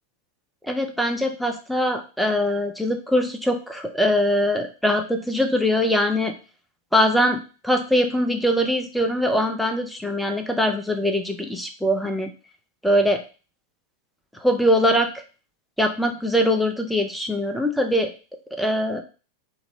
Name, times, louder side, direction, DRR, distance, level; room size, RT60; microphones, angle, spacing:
voice 1, 0.7-6.3 6.9-12.3 12.8-13.2 14.4-15.1 15.8-18.1 18.5-19.0, equal, ahead, 4 dB, 0.6 m, -22 dB
3.0 x 2.8 x 4.3 m, 0.35 s
figure-of-eight pair, 90°, 0 cm